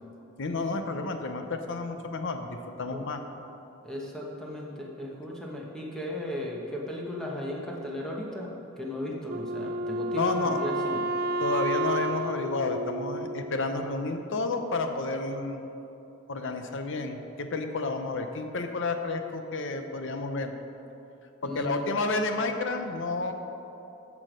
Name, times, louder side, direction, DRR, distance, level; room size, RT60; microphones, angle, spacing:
voice 1, 0.4-3.2 10.1-10.6 11.4-15.7 16.3-20.5 21.4-23.3, left 3 dB, 60° left, 6 dB, 0.8 m, -31 dB
voice 2, 3.8-8.5 8.8-11.1 21.4-21.8, left 1 dB, 5° left, -3 dB, 1.2 m, -36 dB
Wind instrument woodwind instrument, 9.3-13.8, right 1 dB, 45° right, 0.4 m, -31 dB
14.0 x 6.2 x 5.1 m, 2.9 s
head